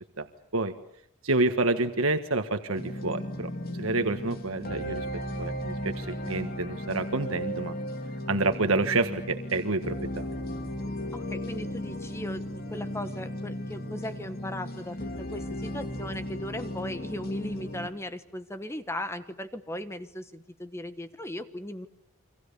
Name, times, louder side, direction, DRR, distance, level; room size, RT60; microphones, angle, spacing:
voice 1, 1.2-3.5 3.8-5.1 5.4-7.7 8.3-10.3, right 3 dB, 80° right, 7 dB, 1.5 m, -28 dB
sound 1, 2.7-17.9, equal, 45° left, 3.5 m, -36 dB
voice 2, 11.1-21.9, left 1 dB, 10° left, 10 dB, 1.2 m, -38 dB
30.0 x 25.0 x 6.9 m, 0.74 s
head